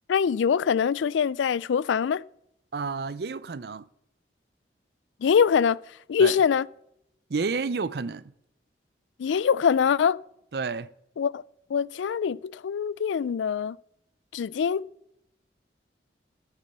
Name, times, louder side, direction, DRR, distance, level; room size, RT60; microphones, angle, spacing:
voice 1, 0.1-2.2 5.2-5.8 6.1-6.7 9.2-10.2 11.2-11.4 11.7-13.8 14.3-14.8, left 7 dB, 85° left, 0.3 m, -23 dB
voice 2, 2.7-3.9 6.2-6.3 7.3-8.2 10.5-10.9, right 4 dB, 60° right, 0.5 m, -30 dB
13.0 x 8.2 x 5.4 m
head